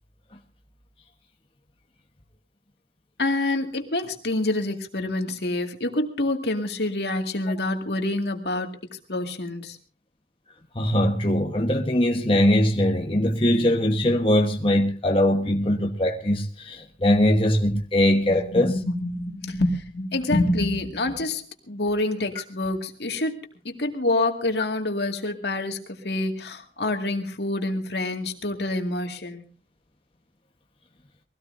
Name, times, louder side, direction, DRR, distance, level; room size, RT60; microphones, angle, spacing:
voice 1, 3.2-9.8 18.3-29.4, left 2 dB, 70° left, 2.2 m, -27 dB
voice 2, 10.7-18.7, left 1 dB, 30° left, 1.3 m, -21 dB
23.0 x 17.0 x 2.7 m
head